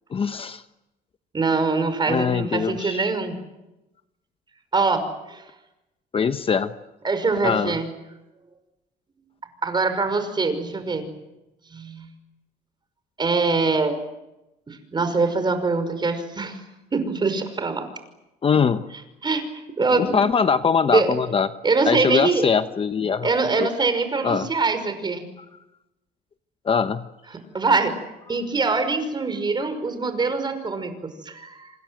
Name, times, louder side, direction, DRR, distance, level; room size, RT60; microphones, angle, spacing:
voice 1, 0.1-0.6 2.1-3.1 6.1-6.7 7.4-7.7 18.4-18.9 19.9-21.5 21.8-23.3 23.6-23.7 24.2-24.5 26.6-27.0, left 6 dB, 35° left, 10 dB, 1.0 m, -22 dB
voice 2, 1.3-3.4 4.7-5.4 7.0-7.9 9.6-11.1 11.7-12.1 13.2-14.0 14.7-16.6 16.9-17.9 19.2-19.4 19.8-20.2 20.9-21.1 21.6-22.5 23.2-25.3 27.5-27.9 28.3-30.9 31.3-31.7, right 3 dB, 25° right, 9 dB, 5.6 m, -23 dB
27.0 x 26.5 x 7.9 m, 0.97 s
cardioid pair, 110°, 17 cm